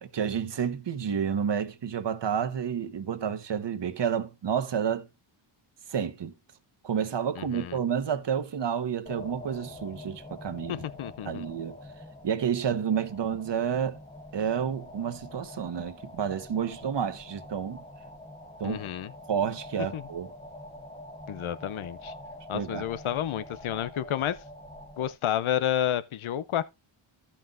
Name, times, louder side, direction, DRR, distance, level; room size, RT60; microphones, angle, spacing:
voice 1, 0.0-5.1 5.9-6.3 6.8-10.8 11.2-11.8 12.2-14.0 14.3-17.8 18.6-18.8 19.3-20.3 22.5-22.9, right 8 dB, 60° right, 1.2 m, -30 dB
voice 2, 7.4-7.8 10.7-11.5 18.6-19.1 19.9-20.0 21.3-22.1 22.5-24.4 25.0-26.6, left 11 dB, 75° left, 0.8 m, -30 dB
sound 1, 9.1-25.1, left 1 dB, 15° left, 1.4 m, -45 dB
14.5 x 5.7 x 2.5 m
cardioid pair, 90°, 49 cm